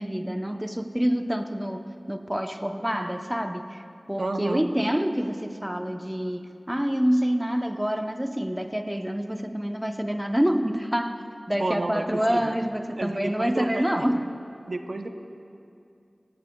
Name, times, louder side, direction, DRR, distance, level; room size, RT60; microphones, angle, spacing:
voice 1, 0.0-3.8 4.1-11.2 11.5-14.3, equal, 10° right, 6 dB, 0.7 m, -27 dB
voice 2, 4.2-4.7 11.5-12.5 13.0-14.1 14.7-15.1, right 2 dB, 75° right, 6 dB, 0.7 m, -31 dB
20.5 x 17.0 x 2.3 m, 2.5 s
wide cardioid pair, 45°, 0 cm